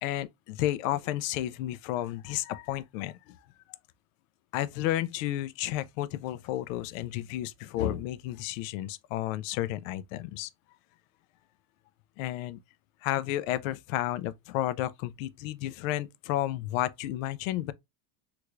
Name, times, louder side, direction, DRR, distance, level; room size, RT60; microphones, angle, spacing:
voice 1, 0.0-3.4 3.7-3.8 4.5-10.5 12.2-12.6 13.0-17.7, left 14 dB, 60° left, 0.5 m, -32 dB
3.4 x 3.2 x 2.4 m
supercardioid pair, 165°, 45 cm